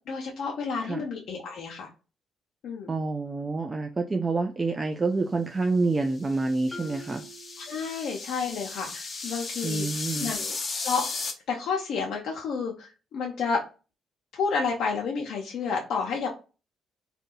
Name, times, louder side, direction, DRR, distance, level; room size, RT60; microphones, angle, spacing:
voice 1, 0.1-1.9 2.6-2.9 7.6-10.6 10.8-11.0 11.5-13.6 14.3-16.3, left 5 dB, 75° left, -2 dB, 0.7 m, -30 dB
voice 2, 2.9-7.2 9.6-10.3, right 3 dB, 25° right, 5 dB, 0.4 m, -27 dB
sound 1, 6.2-11.3, left 3 dB, 40° left, 0.8 m, -35 dB
Marimba xylophone, 6.7-8.5, right 2 dB, 10° left, 0.6 m, -45 dB
2.7 x 2.6 x 3.8 m, 0.32 s
cardioid pair, 90°, 0 cm